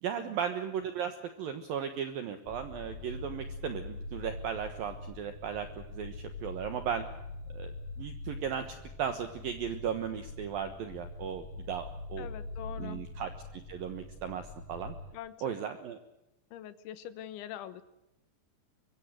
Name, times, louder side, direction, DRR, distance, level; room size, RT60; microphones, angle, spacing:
voice 1, 0.0-7.1 7.5-7.7 8.0-8.7 9.0-12.3 12.8-14.9 15.4-16.0, right 8 dB, 65° right, 8 dB, 2.6 m, -36 dB
sound 1, 2.4-15.1, left 2 dB, 55° left, 4.6 m, -43 dB
voice 2, 12.2-13.0 15.1-15.4 16.5-17.8, left 11 dB, 90° left, 12 dB, 3.6 m, -43 dB
24.0 x 23.5 x 6.5 m, 0.90 s
omnidirectional pair, 5.2 m